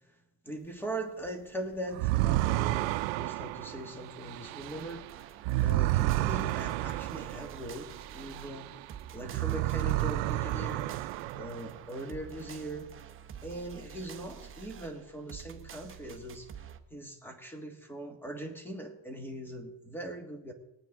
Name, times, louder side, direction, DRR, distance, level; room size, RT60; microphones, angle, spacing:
voice 1, 0.4-5.0 5.6-8.7 9.1-10.9 11.3-12.9 13.4-16.5 16.9-20.5, right 1 dB, 5° left, 5 dB, 1.6 m, -40 dB
sound 1, 1.9-8.9 9.2-11.9, right 17 dB, 75° right, 0.6 m, -31 dB
sound 2, 4.6-16.8, right 8 dB, 25° right, 0.8 m, -48 dB
20.5 x 9.1 x 3.6 m, 0.93 s
cardioid pair, 140°, 46 cm